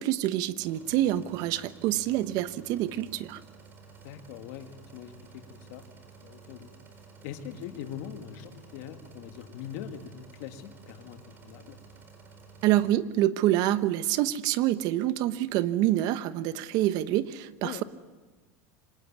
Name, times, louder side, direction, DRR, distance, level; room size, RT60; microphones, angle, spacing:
voice 1, 0.0-3.4 12.6-17.8, right 14 dB, 55° right, 13 dB, 1.1 m, -26 dB
sound 1, 0.6-12.9, right 5 dB, 25° right, 4.7 m, -52 dB
voice 2, 4.0-5.9 6.2-6.7 7.2-11.8 17.6-17.8, left 9 dB, 65° left, 7 dB, 2.2 m, -42 dB
25.0 x 19.5 x 9.4 m, 1.3 s
supercardioid pair, 120°, 8 cm